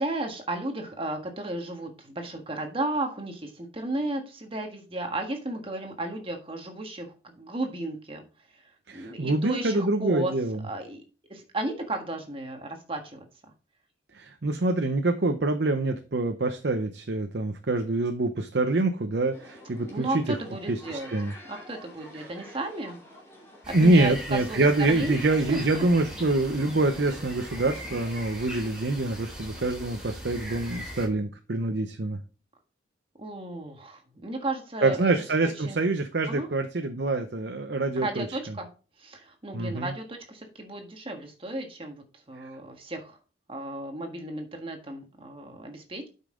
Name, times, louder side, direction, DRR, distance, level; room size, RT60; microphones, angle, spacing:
voice 1, 0.0-8.2 8.5-8.6 8.9-10.3 10.6-11.0 11.3-13.2 19.8-21.1 21.5-23.0 23.7-25.9 33.2-35.1 35.4-35.8 36.3-36.5 38.0-38.7 39.0-43.2 43.5-46.1, right 2 dB, 30° right, 4 dB, 1.5 m, -34 dB
voice 2, 8.9-10.6 14.1-20.1 20.7-21.3 23.7-32.2 34.8-38.3 39.5-39.9 42.4-42.5, right 2 dB, 65° right, 6 dB, 0.7 m, -25 dB
sound 1, 19.3-28.1, left 1 dB, 15° left, 2.6 m, -48 dB
sound 2, 23.6-31.1, equal, 5° right, 3.5 m, -40 dB
8.4 x 5.6 x 3.8 m, 0.35 s
head